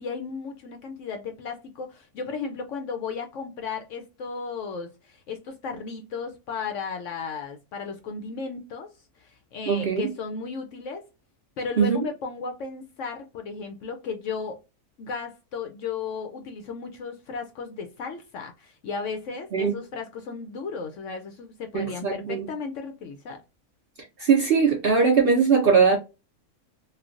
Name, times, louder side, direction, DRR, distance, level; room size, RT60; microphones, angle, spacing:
voice 1, 0.0-8.9 9.2-11.0 11.6-14.6 15.0-23.4, left 5 dB, 70° left, 0.8 m, -35 dB
voice 2, 9.7-10.1 11.8-12.0 19.5-19.8 21.7-22.5 24.2-26.0, right 5 dB, 60° right, 0.6 m, -20 dB
3.1 x 2.2 x 2.4 m
omnidirectional pair, 1.6 m